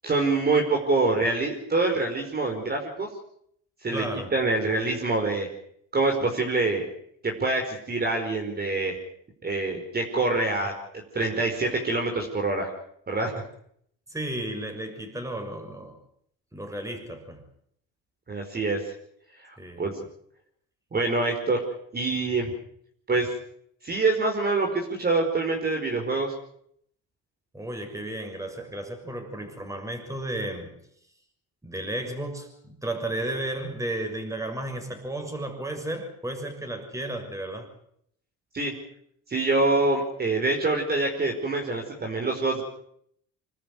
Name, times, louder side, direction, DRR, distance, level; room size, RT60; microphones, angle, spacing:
voice 1, 0.0-3.1 3.8-4.0 4.3-5.5 5.9-6.9 7.2-8.9 9.4-12.7 13.1-13.3 18.3-18.9 19.4-19.9 20.9-21.6 21.9-22.5 23.1-23.3 23.8-26.3 38.5-38.7 39.3-42.6, right 3 dB, 30° right, 2 dB, 5.0 m, -25 dB
voice 2, 3.9-4.3 14.1-16.0 16.5-17.4 19.6-19.9 27.5-30.7 31.6-37.7, right 1 dB, 10° right, 5 dB, 6.5 m, -33 dB
26.5 x 13.5 x 9.6 m, 0.69 s
cardioid pair, 105°, 34 cm